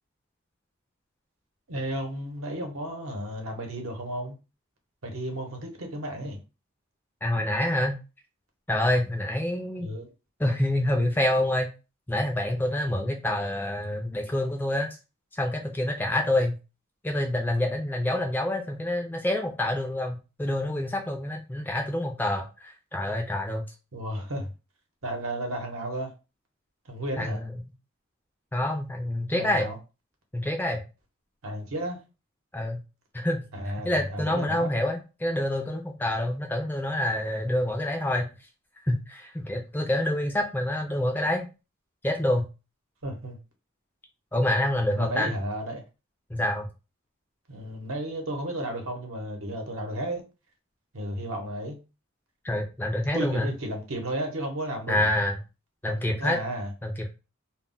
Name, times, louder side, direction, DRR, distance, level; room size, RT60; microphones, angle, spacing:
voice 1, 1.7-4.4 5.0-6.4 9.8-10.1 23.9-24.5 25.0-26.1 26.9-27.4 29.3-29.8 31.4-32.0 33.5-34.7 43.0-43.4 44.9-45.8 47.5-50.2 50.9-51.8 53.1-55.1 55.9-56.7, right 1 dB, 75° right, 0.8 m, -33 dB
voice 2, 7.2-8.0 8.7-9.9 10.4-11.7 12.1-15.0 15.3-16.6 17.0-23.6 27.2-27.5 28.5-29.7 30.3-30.8 32.5-32.8 33.1-33.4 33.8-38.3 38.9-41.5 42.0-42.5 44.3-45.3 46.3-46.7 52.4-53.5 54.9-55.4 55.8-56.4 56.8-57.1, left 1 dB, 10° left, 0.3 m, -27 dB
2.2 x 2.0 x 3.7 m
head